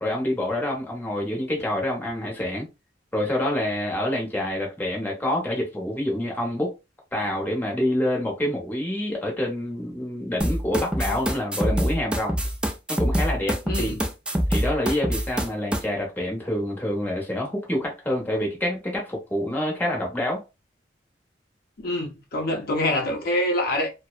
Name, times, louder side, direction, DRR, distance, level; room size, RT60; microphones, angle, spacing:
voice 1, 0.0-2.7 3.1-6.7 7.1-12.4 12.9-14.0 14.5-20.4, left 1 dB, 10° left, 0.8 m, -27 dB
sound 1, 10.4-15.8, equal, 5° right, 0.3 m, -25 dB
voice 2, 13.7-14.0 21.8-23.9, left 1 dB, 60° left, 0.6 m, -25 dB
2.6 x 2.0 x 2.3 m
head